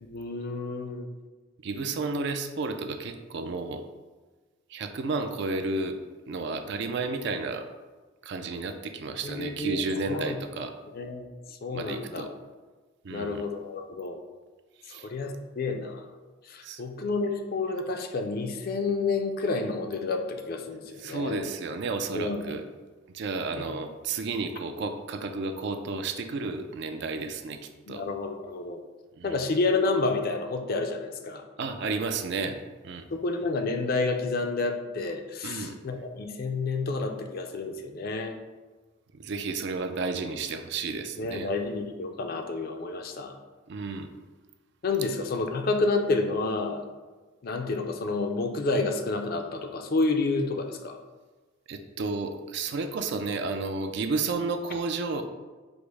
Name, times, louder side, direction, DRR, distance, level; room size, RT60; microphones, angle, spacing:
voice 1, 0.0-1.1 9.2-10.4 10.9-11.3 11.6-12.3 13.1-14.2 14.9-16.1 16.5-21.5 22.1-22.6 23.6-23.7 27.9-28.8 29.2-31.4 33.1-38.3 41.2-43.3 44.8-46.8 47.4-51.0, left 3 dB, 45° left, 5 dB, 0.4 m, -29 dB
voice 2, 1.6-3.8 4.7-6.0 6.3-7.6 8.2-10.7 11.7-12.3 13.0-13.4 14.9-15.1 16.6-16.8 21.0-22.6 23.1-27.6 27.9-28.0 29.2-29.3 31.6-32.5 32.8-33.0 35.4-35.7 39.2-41.5 43.7-44.1 51.7-55.2, right 3 dB, 55° right, 7 dB, 0.4 m, -32 dB
5.1 x 2.1 x 4.6 m, 1.3 s
head